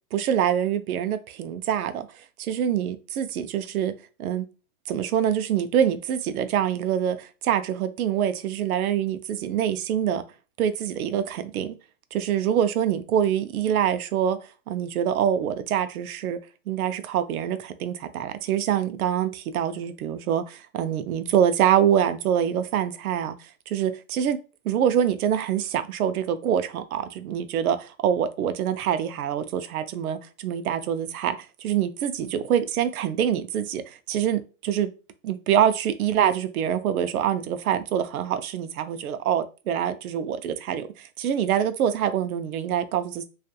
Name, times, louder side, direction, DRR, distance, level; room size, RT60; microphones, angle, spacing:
voice 1, 0.1-2.1 2.4-3.9 4.2-4.5 4.9-10.2 10.6-11.8 12.1-14.4 14.7-16.4 16.7-23.3 23.7-24.4 24.6-34.9 35.2-43.2, right 9 dB, 80° right, 0.6 m, -25 dB
2.4 x 2.3 x 2.7 m
hypercardioid pair, 150°, 43 cm